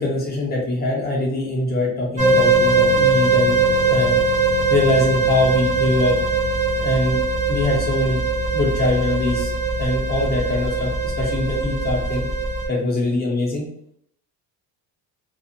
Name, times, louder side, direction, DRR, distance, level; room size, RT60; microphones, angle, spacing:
voice 1, 0.0-4.2 4.7-6.2 6.7-7.2 7.5-8.2 8.5-9.5 9.8-12.2 12.7-13.7, left 2 dB, 25° left, -4 dB, 0.8 m, -22 dB
sound 1, 2.2-12.6, right 3 dB, 15° right, 0.6 m, -20 dB
2.5 x 2.3 x 2.8 m, 0.69 s
cardioid pair, 135°, 39 cm